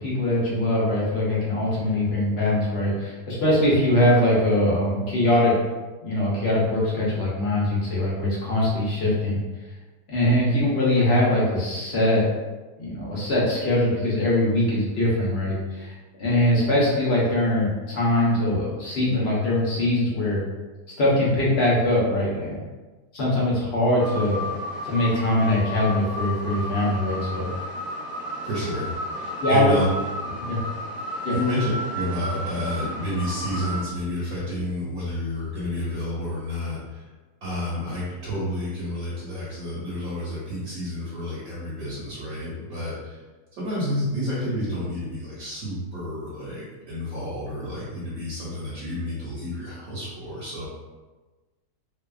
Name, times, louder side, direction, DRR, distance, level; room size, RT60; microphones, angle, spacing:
voice 1, 0.0-5.5 6.0-9.4 10.1-12.2 12.8-15.9 16.2-20.4 21.0-22.6 23.1-24.5 24.8-27.5 29.4-29.7 30.4-30.6 31.2-31.4, left 1 dB, 60° left, -6 dB, 0.6 m, -22 dB
sound 1, 24.0-33.8, left 1 dB, ahead, 0.6 m, -33 dB
voice 2, 28.4-29.1 29.5-29.9 31.3-37.1 37.4-43.2 43.5-50.7, left 1 dB, 70° right, -8 dB, 1.1 m, -30 dB
2.7 x 2.2 x 2.3 m, 1.2 s
omnidirectional pair, 1.7 m